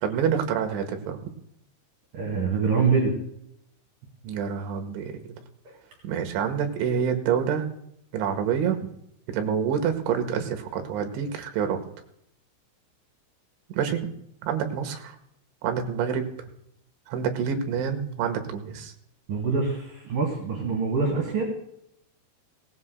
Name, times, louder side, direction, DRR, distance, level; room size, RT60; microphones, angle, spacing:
voice 1, 0.0-1.2 4.2-5.3 6.0-7.7 8.1-8.8 9.3-11.8 13.7-14.1 14.4-15.2 15.6-16.3 17.1-18.9, right 7 dB, 80° right, 6 dB, 3.6 m, -27 dB
voice 2, 2.1-3.2 19.3-21.5, right 4 dB, 55° right, -1 dB, 3.4 m, -25 dB
18.0 x 18.0 x 2.2 m, 0.74 s
omnidirectional pair, 5.5 m